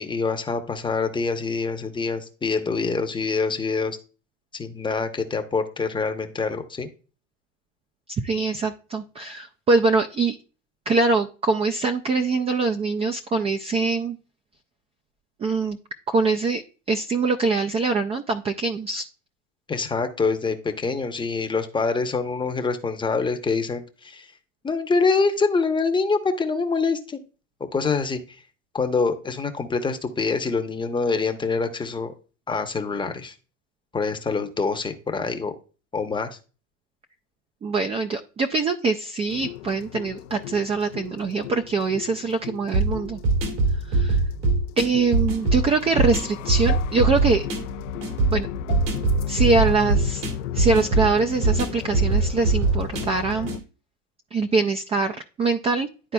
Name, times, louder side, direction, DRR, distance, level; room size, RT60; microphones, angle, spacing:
voice 1, 0.0-4.0 4.5-6.9 19.7-24.3 24.6-27.2 27.7-28.2 28.7-32.1 32.5-33.3 33.9-35.5 35.9-36.4, left 4 dB, 15° left, 6 dB, 0.8 m, -25 dB
voice 2, 8.2-10.4 10.9-14.2 15.4-15.8 16.1-16.6 16.9-19.1 37.6-43.2 43.9-44.2 44.8-47.5 48.3-48.5 49.3-50.2 50.5-53.5 54.3-56.1, right 4 dB, 15° right, 5 dB, 0.4 m, -23 dB
sound 1, 39.3-53.6, left 12 dB, 75° left, 0.6 m, -35 dB
sound 2, 42.7-53.6, right 3 dB, 70° right, 1.9 m, -23 dB
11.0 x 4.0 x 2.3 m, 0.35 s
supercardioid pair, 110°, 37 cm